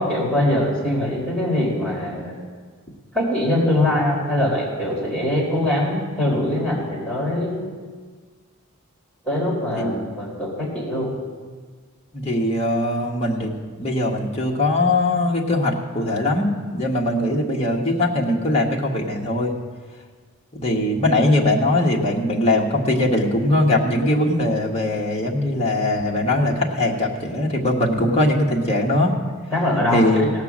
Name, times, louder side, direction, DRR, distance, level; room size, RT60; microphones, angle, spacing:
voice 1, 0.0-2.3 3.1-7.7 9.2-11.1 29.5-30.3, left 1 dB, 5° left, -6 dB, 4.2 m, -22 dB
voice 2, 9.8-10.1 12.1-19.5 20.5-29.1 29.9-30.3, left 1 dB, 30° left, -2 dB, 1.5 m, -21 dB
17.5 x 5.9 x 7.3 m, 1.5 s
head